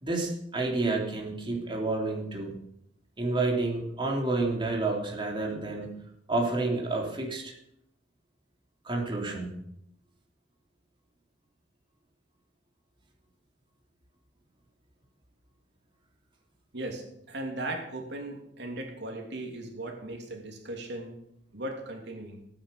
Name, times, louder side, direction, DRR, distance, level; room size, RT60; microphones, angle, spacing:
voice 1, 0.0-2.5 3.2-5.9 6.3-7.5 8.8-9.6, right 2 dB, 30° right, -1 dB, 3.4 m, -29 dB
voice 2, 16.7-21.2 21.5-22.4, right 1 dB, 65° right, 2 dB, 3.1 m, -37 dB
18.5 x 9.7 x 7.0 m, 0.76 s
head